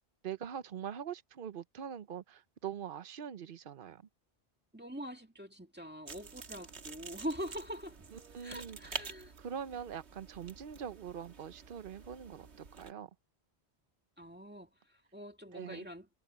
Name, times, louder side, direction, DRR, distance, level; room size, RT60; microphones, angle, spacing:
voice 1, 0.2-4.0 8.1-8.8 9.4-13.1 15.5-15.8, right 8 dB, 55° right, 1.0 m, -43 dB
voice 2, 4.7-9.3 14.2-16.1, equal, 10° right, 2.3 m, -44 dB
sound 1, 6.1-12.9, right 5 dB, 85° right, 1.8 m, -48 dB
omnidirectional pair, 1.1 m